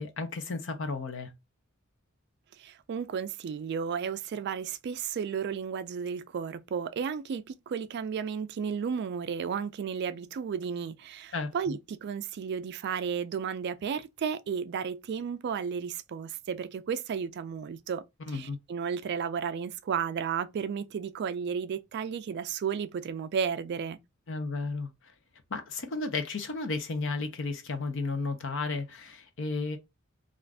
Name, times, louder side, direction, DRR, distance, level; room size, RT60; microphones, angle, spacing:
voice 1, 0.0-1.3 11.3-11.8 18.3-18.6 24.3-24.9 25.5-29.8, left 3 dB, 65° left, 0.6 m, -33 dB
voice 2, 2.6-24.0, right 6 dB, 55° right, 0.3 m, -33 dB
2.5 x 2.4 x 3.2 m
head